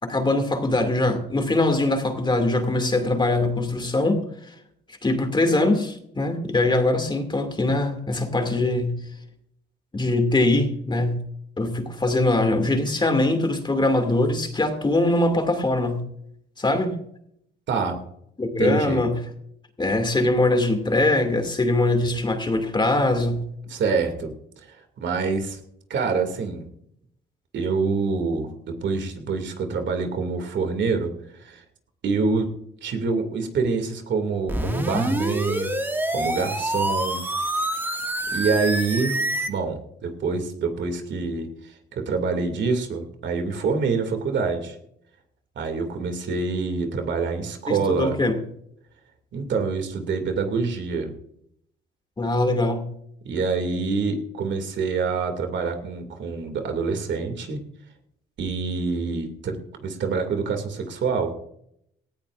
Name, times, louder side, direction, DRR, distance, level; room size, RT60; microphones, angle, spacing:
voice 1, 0.0-4.2 5.0-9.0 9.9-11.2 11.6-16.1 16.6-17.0 18.4-19.2 19.8-23.4 47.7-48.4 52.2-52.9, left 2 dB, 25° left, 6 dB, 2.5 m, -22 dB
voice 2, 17.7-18.0 18.6-19.1 23.7-24.3 24.7-25.6 25.9-26.6 27.5-28.5 28.8-31.1 31.4-31.6 32.0-32.5 32.8-35.8 36.1-37.2 38.3-39.2 39.5-41.5 41.9-44.8 45.6-48.2 49.3-51.1 53.2-57.6 58.4-61.3, right 4 dB, 65° right, 5 dB, 2.6 m, -26 dB
sound 1, 34.5-39.5, right 1 dB, 10° right, 2.0 m, -26 dB
18.0 x 14.5 x 2.6 m, 0.72 s
cardioid pair, 90°, 20 cm